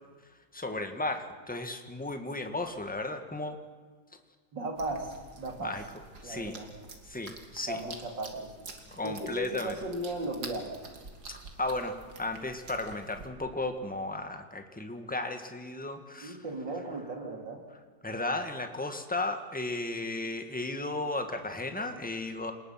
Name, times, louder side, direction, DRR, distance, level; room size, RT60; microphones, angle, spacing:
voice 1, 0.5-3.6 5.6-5.8 6.2-6.6 7.1-7.8 8.9-9.8 11.6-16.4 18.0-22.5, left 2 dB, 5° left, 6 dB, 1.6 m, -34 dB
voice 2, 4.5-5.7 6.2-6.7 7.7-8.5 9.0-10.8 16.2-17.6, right 2 dB, 85° right, 3 dB, 3.8 m, -36 dB
sound 1, 4.8-13.3, right 3 dB, 65° right, 2.8 m, -48 dB
28.0 x 19.5 x 5.8 m, 1.5 s
omnidirectional pair, 1.9 m